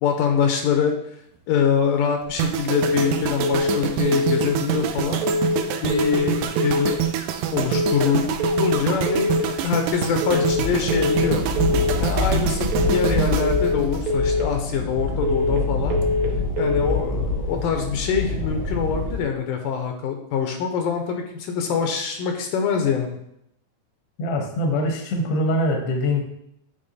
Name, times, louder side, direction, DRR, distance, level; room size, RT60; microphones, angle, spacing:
voice 1, 0.0-0.9 1.5-5.3 5.8-7.1 7.5-11.4 12.0-16.0 16.6-23.2, left 7 dB, 80° left, 4 dB, 2.3 m, -24 dB
sound 1, 2.4-14.6 14.8-15.1, right 11 dB, 85° right, 2.2 m, -26 dB
sound 2, 2.7-3.1 3.4-3.8 4.1-4.5 5.2-5.6 5.9-6.3 6.6-7.0 7.7-8.1 8.4-8.8 9.1-9.5 10.2-10.6 10.9-11.3 11.6-12.0 12.7-13.1 13.4-13.8 14.1-14.5 15.2-15.6 15.9-16.3 16.6-17.0, left 2 dB, 65° right, 2.2 m, -23 dB
Distant Thunder, 10.5-19.2, left 2 dB, 40° right, 1.7 m, -26 dB
voice 2, 24.2-26.2, left 1 dB, 60° left, 3 dB, 1.7 m, -23 dB
8.6 x 3.5 x 4.1 m, 0.76 s
omnidirectional pair, 3.9 m